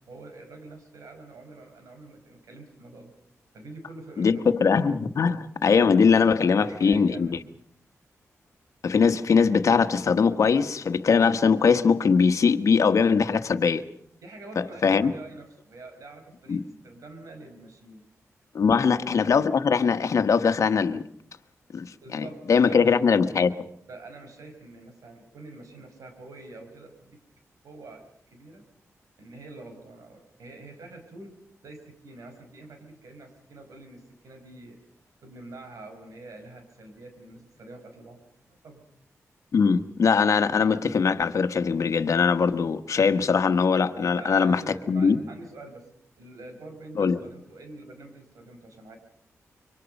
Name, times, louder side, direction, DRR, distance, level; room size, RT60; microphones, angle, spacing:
voice 1, 0.0-3.1 3.5-4.5 6.3-7.6 14.2-18.1 18.7-19.0 22.0-22.4 22.7-23.0 23.9-27.2 27.6-28.6 29.2-31.3 31.6-34.8 35.2-38.2 38.5-38.8 44.0-45.9 46.2-49.0, right 2 dB, 85° right, 5.2 m, -45 dB
voice 2, 4.2-7.4 8.8-13.8 14.6-15.1 16.5-16.6 18.5-21.1 21.7-23.7 39.5-45.2 47.0-47.2, left 5 dB, 70° left, 1.3 m, -21 dB
26.5 x 24.0 x 5.4 m
wide cardioid pair, 85°, 6 cm